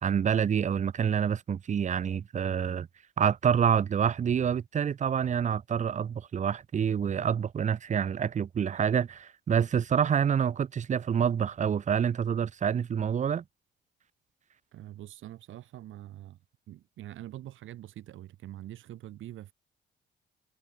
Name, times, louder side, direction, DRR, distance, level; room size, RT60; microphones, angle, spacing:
voice 1, 0.0-2.9 3.2-13.4, right 8 dB, 35° right, 0.6 m, -27 dB
voice 2, 14.7-16.4 16.7-19.5, right 13 dB, 80° right, 2.1 m, -44 dB
cardioid pair, 90°, 20 cm